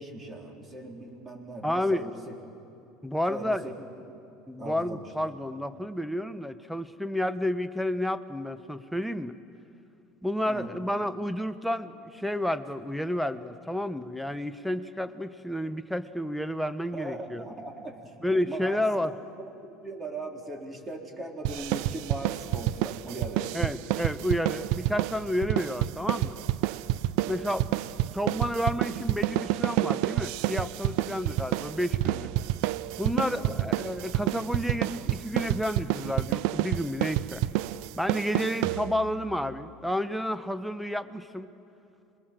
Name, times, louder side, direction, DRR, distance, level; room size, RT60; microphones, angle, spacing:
voice 1, 0.0-2.3 3.3-3.7 4.1-4.2 4.6-5.3 10.5-10.7 16.9-18.1 18.5-19.2 19.6-23.5 33.3-33.6, right 2 dB, 20° right, 2 dB, 3.8 m, -39 dB
voice 2, 1.6-2.1 3.0-3.6 4.5-9.3 10.2-17.4 18.2-19.1 23.5-26.3 27.2-27.7 28.1-32.3 33.0-37.4 38.0-41.5, left 1 dB, ahead, 9 dB, 1.0 m, -30 dB
sound 1, 21.4-39.2, right 15 dB, 70° right, 0.5 m, -29 dB
27.0 x 21.5 x 7.6 m, 2.7 s
supercardioid pair, 110°, 0 cm